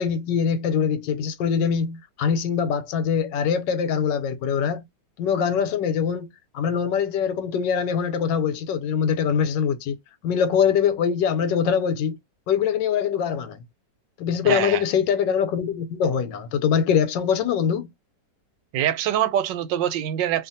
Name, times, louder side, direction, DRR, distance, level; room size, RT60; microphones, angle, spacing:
voice 1, 0.0-4.8 5.2-6.3 6.5-10.0 10.2-12.2 12.5-13.6 14.2-17.9, left 7 dB, 90° left, 1.3 m, -23 dB
voice 2, 14.4-14.8 18.7-20.5, right 11 dB, 90° right, 1.3 m, -24 dB
2.7 x 2.5 x 2.6 m
omnidirectional pair, 1.9 m